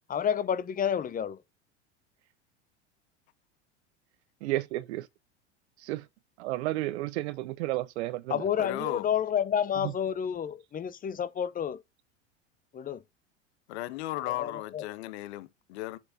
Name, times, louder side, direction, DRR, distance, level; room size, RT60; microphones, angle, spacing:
voice 1, 0.1-1.4 8.3-11.8 12.7-13.0 14.3-14.8, left 8 dB, 25° left, 0.7 m, -30 dB
voice 2, 4.4-5.1 5.8-6.0 6.4-8.4 9.8-9.9, right 17 dB, 65° right, 0.6 m, -32 dB
voice 3, 8.6-9.1 13.7-16.0, left 16 dB, 65° left, 1.0 m, -35 dB
8.0 x 5.9 x 2.6 m
hypercardioid pair, 90°, 36 cm